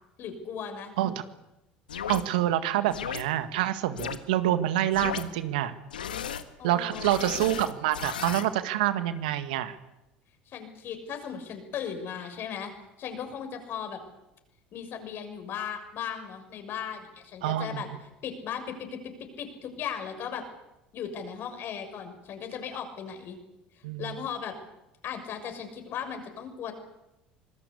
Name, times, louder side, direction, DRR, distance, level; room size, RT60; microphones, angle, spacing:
voice 1, 0.2-0.9 6.6-7.1 10.5-12.7 13.0-14.0 14.7-17.9 18.2-20.4 20.9-23.4 24.0-24.5 25.0-26.7, left 7 dB, 50° left, 7 dB, 6.7 m, -37 dB
sound 1, 1.9-2.2 2.9-3.2 4.0-4.2 4.9-5.2 5.9-6.4 6.9-8.4, left 9 dB, 85° left, 1.5 m, -35 dB
voice 2, 2.1-5.7 6.6-9.8 17.4-17.8 23.8-24.2, right 13 dB, 75° right, 11 dB, 1.9 m, -27 dB
26.0 x 20.5 x 8.5 m, 0.93 s
hypercardioid pair, 70°, 5 cm